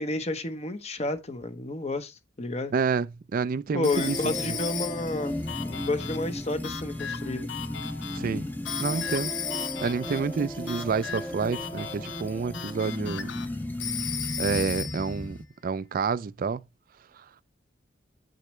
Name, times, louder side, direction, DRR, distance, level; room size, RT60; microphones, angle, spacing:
voice 1, 0.0-2.7 3.7-5.4 5.7-7.5, left 2 dB, 35° left, 0.9 m, -31 dB
voice 2, 2.7-3.1 3.3-4.6 8.1-8.5 8.8-13.3 14.4-15.4 15.6-16.6 17.1-17.3, right 5 dB, 45° right, 0.3 m, -29 dB
Telephone, 3.8-5.3 8.7-10.1 13.8-15.2, left 8 dB, 85° left, 1.6 m, -34 dB
sound 1, 3.9-15.4, left 1 dB, 10° left, 0.7 m, -35 dB
sound 2, 5.5-13.5, left 7 dB, 70° left, 0.7 m, -40 dB
8.6 x 6.6 x 3.1 m
head